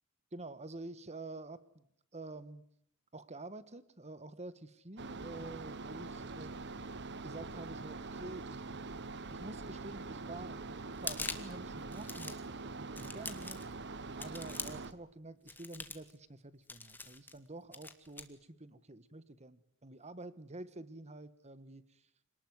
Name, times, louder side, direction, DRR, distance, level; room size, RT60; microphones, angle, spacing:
voice 1, 0.3-1.8 2.1-2.6 3.1-6.6 7.2-8.8 9.3-10.6 11.0-13.6 14.1-22.0, right 2 dB, 30° right, 14 dB, 1.5 m, -48 dB
sound 1, 5.0-14.9, right 3 dB, 55° right, 1.3 m, -44 dB
sound 2, 10.9-11.6 11.9-12.5 13.0-13.7 14.2-14.9 15.5-16.1 16.7-17.4 17.7-18.2, left 3 dB, 10° left, 2.0 m, -43 dB
27.0 x 19.5 x 9.6 m, 0.70 s
head